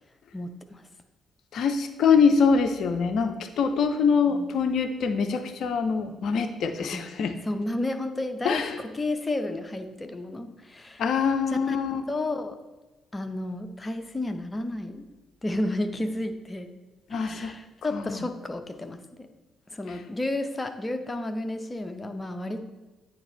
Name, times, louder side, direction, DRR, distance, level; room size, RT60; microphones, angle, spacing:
voice 1, 0.3-0.9 4.3-4.5 6.8-7.1 7.4-11.1 11.5-11.8 12.1-12.6 13.1-15.1 15.4-16.7 17.1-19.3 19.7-22.7, left 2 dB, 20° left, 7 dB, 0.7 m, -32 dB
voice 2, 1.5-7.3 8.4-8.7 11.0-12.0 17.1-17.5 17.9-18.0, left 5 dB, 55° left, 8 dB, 0.5 m, -24 dB
9.1 x 3.3 x 4.3 m, 1.2 s
figure-of-eight pair, 40°, 0 cm